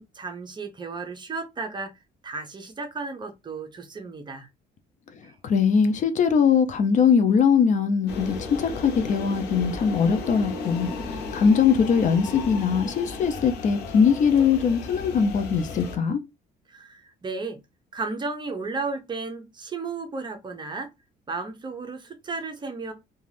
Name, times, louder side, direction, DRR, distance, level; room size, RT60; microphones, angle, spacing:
voice 1, 0.0-1.9 2.2-4.5 5.2-5.3 16.7-17.6 17.9-20.9 21.3-22.9, right 4 dB, 25° right, 0.6 m, -34 dB
voice 2, 5.4-16.2, left 6 dB, 45° left, 0.5 m, -21 dB
sound 1, 8.1-16.0, left 4 dB, 75° left, 0.8 m, -34 dB
2.4 x 2.3 x 3.2 m
cardioid pair, 110°, 17 cm